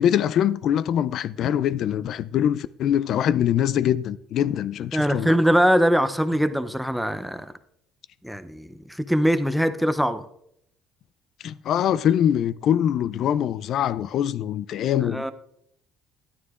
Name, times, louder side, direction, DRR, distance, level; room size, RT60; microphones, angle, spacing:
voice 1, 0.0-5.4 11.4-15.3, left 10 dB, 60° left, 0.3 m, -23 dB
voice 2, 4.9-7.5 8.2-10.3 15.0-15.3, equal, ahead, 0.5 m, -22 dB
11.0 x 9.5 x 2.4 m
cardioid pair, 100°, 0 cm